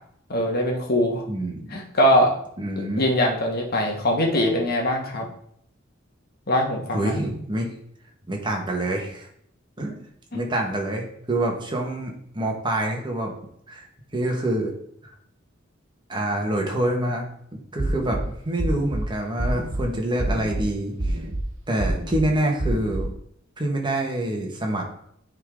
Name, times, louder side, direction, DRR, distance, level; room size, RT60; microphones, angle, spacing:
voice 1, 0.3-1.2 1.7-2.3 2.8-5.2 6.5-7.2 10.3-10.4, equal, 50° left, 1 dB, 1.4 m, -22 dB
voice 2, 1.3-1.8 2.6-3.0 6.9-7.7 8.3-9.3 9.8-10.0 10.3-13.3 13.7-13.9 14.1-14.7 16.1-21.2 21.7-23.1 23.6-24.8, right 1 dB, 25° right, 1 dB, 1.3 m, -26 dB
sound 1, 17.8-18.2 18.6-19.0 19.4-19.8 20.2-20.6 21.0-21.4 21.8-22.2 22.6-23.0, right 1 dB, 70° right, 1.2 m, -26 dB
9.6 x 3.9 x 3.6 m, 0.68 s
head